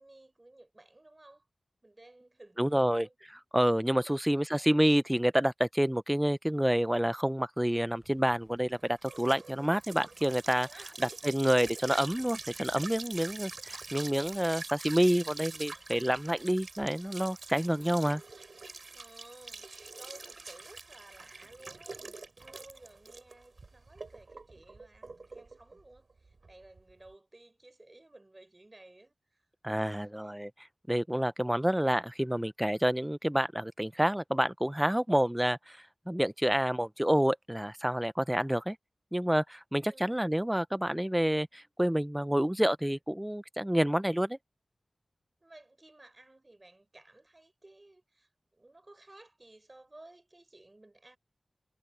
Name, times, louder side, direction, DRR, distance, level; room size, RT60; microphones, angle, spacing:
voice 1, 0.0-1.5 1.8-3.4 3.9-4.6 10.6-11.0 13.6-13.7 18.9-29.5 29.7-30.3 31.5-31.6 39.9-40.2 45.4-51.2, right 2 dB, 30° right, 5.2 m, -56 dB
voice 2, 2.6-3.1 3.5-10.7 11.0-18.2 29.6-30.5 30.9-35.8 36.1-38.8 39.1-44.4, equal, 5° right, 0.6 m, -28 dB
sound 1, 8.0-27.1, right 3 dB, 60° right, 4.5 m, -45 dB
wide cardioid pair, 85°, 0 cm